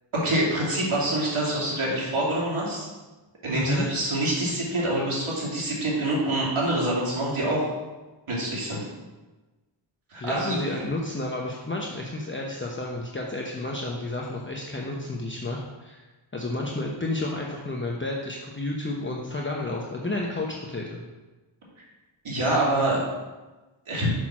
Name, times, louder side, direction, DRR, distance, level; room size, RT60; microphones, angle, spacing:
voice 1, 0.1-2.9 3.4-7.7 8.3-8.8 10.1-10.6 22.2-23.0 23.9-24.1, right 1 dB, 75° right, -5 dB, 2.8 m, -26 dB
voice 2, 3.5-3.9 10.2-16.0 16.3-21.0, left 2 dB, 25° left, -1 dB, 0.9 m, -31 dB
6.3 x 5.9 x 6.0 m, 1.2 s
wide cardioid pair, 80°, 50 cm